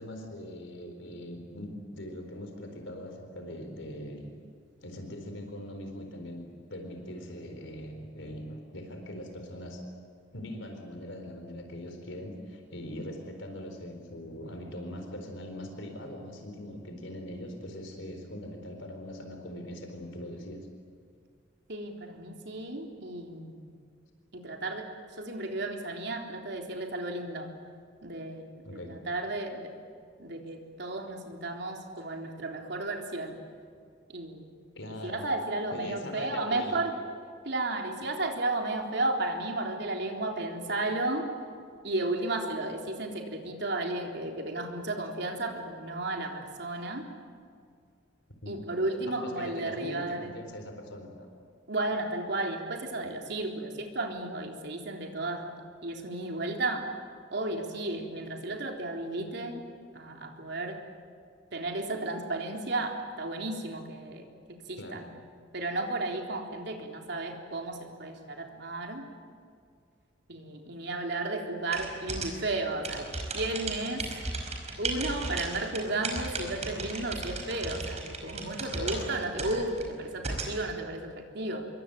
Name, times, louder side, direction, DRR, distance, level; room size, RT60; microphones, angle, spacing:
voice 1, 0.0-4.3 4.8-9.8 10.3-20.7 28.6-28.9 34.7-35.3 35.7-36.8 48.4-48.6 49.1-51.3 64.8-65.0 78.8-79.1, left 1 dB, 75° left, 5 dB, 4.2 m, -41 dB
voice 2, 21.7-23.7 24.3-24.9 25.2-27.5 28.0-28.6 28.9-29.7 30.2-33.4 34.1-34.5 34.8-36.9 37.4-41.3 41.8-47.0 48.5-50.3 51.7-55.5 55.8-56.9 57.3-59.6 59.9-60.8 61.5-64.3 64.7-65.1 65.5-69.0 70.3-73.1 73.3-74.1 74.8-81.7, right 2 dB, 60° right, 2 dB, 3.7 m, -33 dB
sound 1, 71.7-80.6, right 3 dB, 35° right, 5.0 m, -36 dB
27.0 x 23.5 x 9.0 m, 2.2 s
head